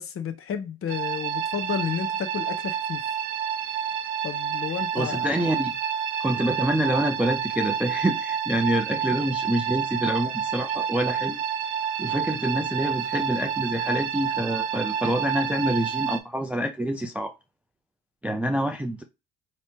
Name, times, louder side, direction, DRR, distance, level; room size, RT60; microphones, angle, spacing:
voice 1, 0.0-3.0 4.2-5.3, left 8 dB, 40° left, 0.7 m, -31 dB
sound 1, 0.9-16.2, right 8 dB, 85° right, 0.5 m, -29 dB
voice 2, 4.9-5.7 6.2-11.4 12.0-17.3 18.2-19.0, right 1 dB, 5° right, 0.3 m, -26 dB
3.2 x 3.0 x 2.8 m
hypercardioid pair, 70°, 34 cm